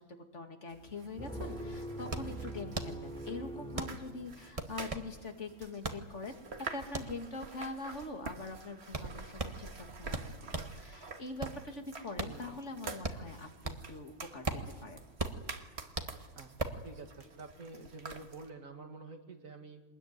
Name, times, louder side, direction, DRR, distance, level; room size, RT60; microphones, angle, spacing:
voice 1, 0.3-14.5 14.8-15.0, left 3 dB, 55° left, 5 dB, 2.6 m, -43 dB
sound 1, 0.7-18.5, right 4 dB, 50° right, 1.8 m, -48 dB
sound 2, 1.2-4.8, right 1 dB, 5° left, 3.3 m, -43 dB
sound 3, 2.1-10.8 11.2-14.0 14.3-16.9, right 2 dB, 25° right, 1.6 m, -40 dB
voice 2, 16.8-19.8, right 3 dB, 75° right, 5 dB, 2.6 m, -48 dB
24.5 x 20.5 x 9.6 m, 1.3 s
omnidirectional pair, 1.4 m